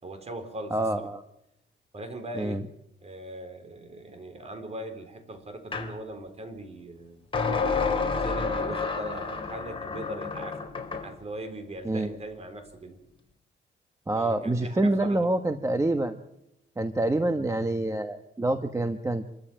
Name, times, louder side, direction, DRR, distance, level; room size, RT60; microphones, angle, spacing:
voice 1, 0.0-1.1 1.9-2.6 3.0-7.3 7.8-10.6 11.0-13.0 14.1-15.4, right 1 dB, 35° right, 8 dB, 4.0 m, -40 dB
voice 2, 0.7-1.2 2.4-2.6 11.8-12.1 14.1-16.2 16.8-19.3, right 2 dB, 15° right, 8 dB, 1.2 m, -26 dB
sound 1, 5.7-5.9 7.3-11.1, left 4 dB, 25° left, 3.6 m, -29 dB
26.5 x 13.5 x 9.1 m, 0.85 s
cardioid pair, 110°, 19 cm